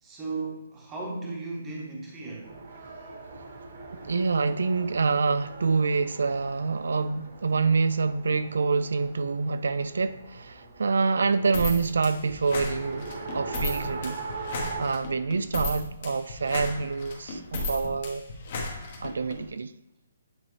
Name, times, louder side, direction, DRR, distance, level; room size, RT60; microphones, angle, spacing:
voice 1, 0.0-2.6, right 3 dB, 10° right, 1.0 m, -36 dB
Race car auto racing, 2.4-14.8, right 4 dB, 40° right, 1.0 m, -41 dB
voice 2, 4.0-13.1 13.3-14.2 14.6-18.2 19.0-19.7, right 4 dB, 80° right, 0.3 m, -26 dB
sound 1, 11.5-19.4, left 2 dB, 35° left, 1.1 m, -35 dB
8.5 x 4.3 x 3.2 m
hypercardioid pair, 175°, 0 cm